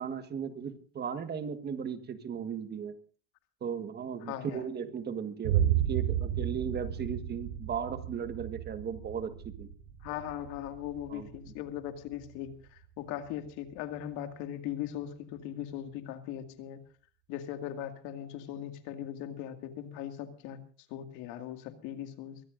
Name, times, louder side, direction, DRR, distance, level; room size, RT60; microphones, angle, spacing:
voice 1, 0.0-2.9 3.6-9.7 11.1-11.5, right 7 dB, 30° right, 10 dB, 1.5 m, -36 dB
voice 2, 4.2-4.6 10.0-16.8 17.3-20.6 20.9-22.4, left 11 dB, 60° left, 7 dB, 2.2 m, -39 dB
Boom, 5.4-13.3, right 10 dB, 70° right, 4.2 m, -33 dB
23.5 x 17.5 x 2.6 m, 0.41 s
supercardioid pair, 110°, 34 cm